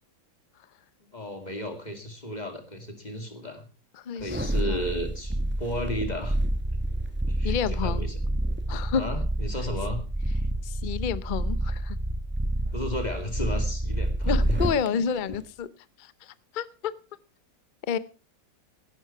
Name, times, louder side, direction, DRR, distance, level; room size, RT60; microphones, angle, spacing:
voice 1, 1.1-3.7 4.1-6.4 6.7-6.8 7.3-8.1 8.9-10.0 12.7-14.6 14.9-15.2, equal, 25° left, 6 dB, 2.4 m, -34 dB
voice 2, 3.9-4.8 7.4-8.1 8.7-9.0 10.6-12.0 14.2-15.7 16.0-16.9 17.9-18.0, left 7 dB, 70° left, 16 dB, 0.4 m, -30 dB
sound 1, 4.2-14.9 15.3-15.4, right 1 dB, 10° right, 0.8 m, -28 dB
16.0 x 11.5 x 4.5 m, 0.34 s
omnidirectional pair, 1.9 m